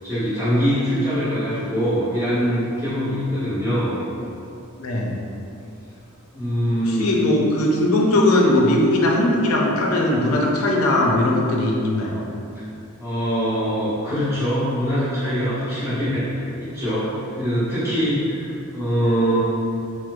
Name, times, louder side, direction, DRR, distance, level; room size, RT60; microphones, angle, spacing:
voice 1, 0.0-4.0 6.3-7.1 12.5-12.6 13.0-19.4, equal, 15° right, -16 dB, 1.5 m, -23 dB
voice 2, 4.8-5.1 6.9-12.2, left 1 dB, 80° left, -1 dB, 0.5 m, -19 dB
4.5 x 2.1 x 2.5 m, 2.6 s
head